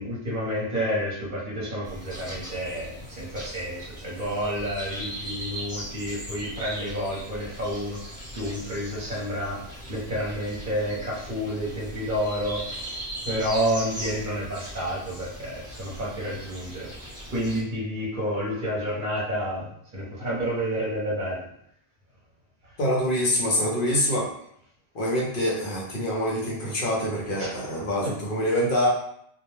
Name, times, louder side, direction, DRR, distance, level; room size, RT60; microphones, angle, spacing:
voice 1, 0.0-16.9 17.3-21.5 27.4-28.1, equal, 50° right, -5 dB, 0.9 m, -30 dB
sound 1, 1.8-17.6, equal, 5° right, 0.8 m, -39 dB
voice 2, 22.8-24.3 24.9-28.9, equal, 60° left, -4 dB, 0.8 m, -25 dB
2.2 x 2.1 x 3.0 m, 0.70 s
omnidirectional pair, 1.1 m